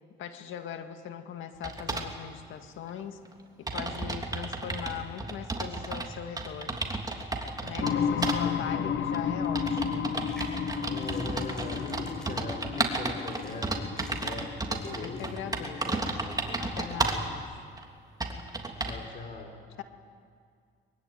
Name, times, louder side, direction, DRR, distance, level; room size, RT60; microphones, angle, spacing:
voice 1, 0.2-3.2 3.6-6.8 7.6-10.1 15.0-16.2 16.6-17.4 19.8-19.9, left 9 dB, 85° left, 7 dB, 1.9 m, -40 dB
sound 1, 1.6-2.1 3.0-3.1 3.3-3.4 3.7-6.1 6.4-7.9 8.2-8.4 9.1-17.3 17.8-17.9 18.2-19.0, right 2 dB, 20° right, 3.1 m, -33 dB
sound 2, 7.8-17.4, left 7 dB, 65° left, 1.3 m, -33 dB
voice 2, 7.8-8.9 10.8-15.2 15.6-16.6 18.8-19.5, left 3 dB, 45° left, 3 dB, 4.7 m, -41 dB
sound 3, 10.1-15.3, right 1 dB, 5° left, 6.1 m, -53 dB
23.5 x 23.0 x 9.5 m, 2.1 s
cardioid pair, 90°, 20 cm